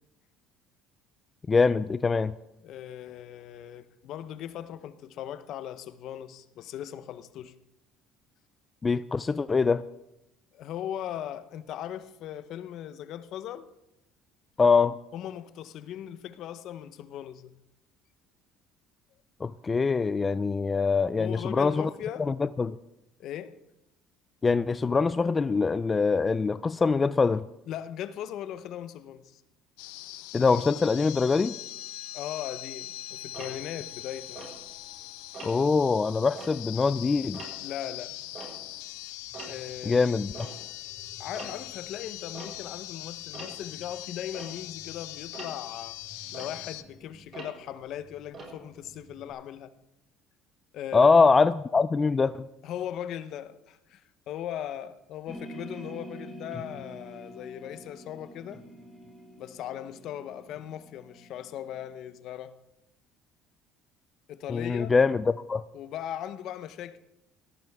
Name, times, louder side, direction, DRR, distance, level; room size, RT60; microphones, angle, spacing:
voice 1, 1.5-2.3 8.8-9.8 14.6-14.9 19.4-21.9 22.3-22.8 24.4-27.5 30.3-31.5 35.4-37.4 39.9-40.5 50.9-52.5 64.5-65.2 65.5-65.6, left 4 dB, 25° left, 0.4 m, -23 dB
voice 2, 2.6-7.5 10.5-13.7 15.1-17.5 21.2-22.3 23.2-23.5 27.7-29.4 32.1-34.5 35.0-35.1 37.6-38.2 39.5-40.1 40.3-40.7 41.2-46.0 46.3-49.7 50.7-51.1 52.6-58.6 59.4-62.6 64.3-64.9 65.7-67.0, left 10 dB, 65° left, 0.9 m, -38 dB
sound 1, 29.8-46.8, left 17 dB, 85° left, 0.6 m, -42 dB
Tick-tock, 33.3-35.0 35.3-35.8 36.2-38.9 39.2-49.3, right 3 dB, 45° right, 5.8 m, -46 dB
sound 2, 55.3-62.0, equal, ahead, 2.8 m, -46 dB
18.0 x 13.5 x 3.6 m
supercardioid pair, 90°, 0 cm